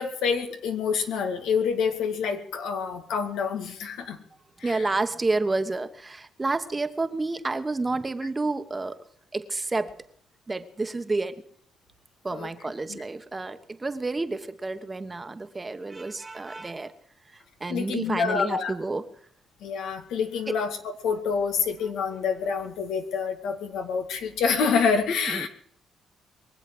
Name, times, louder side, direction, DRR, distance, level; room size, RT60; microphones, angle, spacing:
voice 1, 0.0-4.2 4.6-4.9 12.3-12.5 12.9-13.0 17.7-18.7 19.6-25.5, left 6 dB, 85° left, 5 dB, 2.2 m, -27 dB
voice 2, 4.6-9.0 9.3-9.9 10.5-11.4 12.2-16.9 17.3-19.0 20.5-20.6 25.3-25.5, right 3 dB, 20° right, 10 dB, 1.3 m, -30 dB
23.0 x 7.7 x 7.8 m, 0.62 s
cardioid pair, 90°, 0 cm